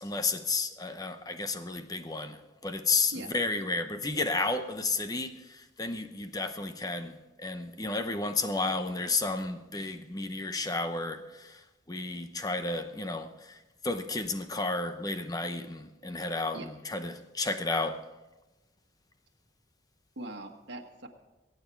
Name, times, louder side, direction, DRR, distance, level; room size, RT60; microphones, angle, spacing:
voice 1, 0.0-11.6 11.9-13.6 13.8-18.0, left 3 dB, 20° left, 0.8 m, -32 dB
voice 2, 3.1-3.7 16.5-16.7 20.2-21.1, right 1 dB, 65° right, 1.5 m, -42 dB
22.5 x 9.1 x 4.5 m
head